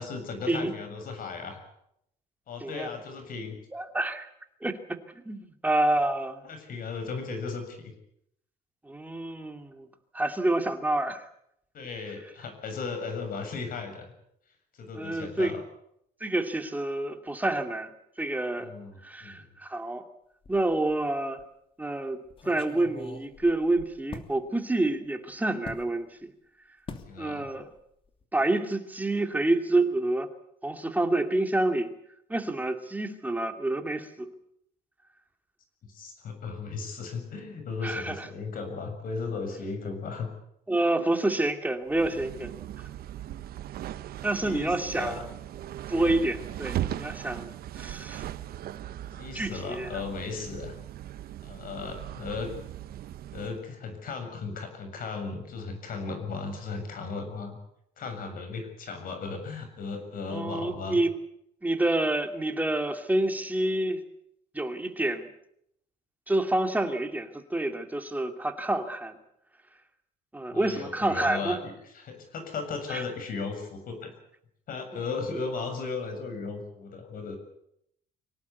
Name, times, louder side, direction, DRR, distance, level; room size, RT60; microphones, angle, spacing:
voice 1, 0.0-1.6 2.5-3.6 6.4-7.9 11.7-14.1 14.7-15.6 18.6-19.5 27.0-27.5 35.8-40.3 41.0-41.1 44.4-45.3 49.1-50.8 51.4-52.5 53.3-57.6 58.0-61.0 70.5-74.1 74.7-77.4, left 4 dB, 55° left, 6 dB, 7.2 m, -36 dB
voice 2, 2.6-2.9 3.7-4.3 4.6-6.4 8.8-9.9 10.1-11.3 14.9-15.6 16.2-17.9 18.2-18.7 19.0-20.0 20.5-21.4 21.8-26.3 27.2-27.7 28.3-30.3 30.6-31.9 32.3-34.3 37.8-38.3 40.7-42.5 44.2-45.3 45.9-48.3 49.3-50.0 60.3-61.1 61.6-64.0 64.5-65.3 66.3-69.2 70.3-71.6 72.9-73.0, right 2 dB, 10° right, 5 dB, 2.5 m, -28 dB
sound 1, 20.4-21.0 21.4-21.5 22.3-24.3 25.6-25.9 26.9-27.1 27.5-27.8 28.1-28.2, left 4 dB, 30° left, 2.8 m, -43 dB
sound 2, 41.9-53.6, right 12 dB, 65° right, 1.0 m, -38 dB
25.0 x 18.0 x 8.4 m, 0.76 s
cardioid pair, 110°, 17 cm